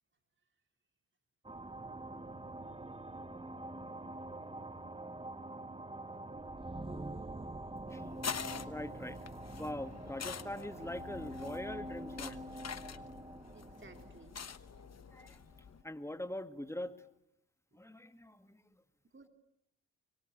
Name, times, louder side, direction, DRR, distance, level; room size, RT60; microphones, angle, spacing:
sound 1, 1.4-15.6, right 1 dB, 15° right, 1.1 m, -45 dB
voice 1, 2.7-3.1 13.5-14.4 17.7-17.8 19.1-19.3, right 3 dB, 30° right, 6 dB, 3.7 m, -59 dB
sound 2, 7.9-15.8, left 7 dB, 40° left, 1.2 m, -46 dB
voice 2, 8.7-9.2 9.6-12.4 15.1-15.4 15.8-17.0 17.7-18.8, left 1 dB, 5° left, 10 dB, 2.2 m, -43 dB
24.5 x 24.0 x 8.8 m, 0.76 s
supercardioid pair, 50°, 38 cm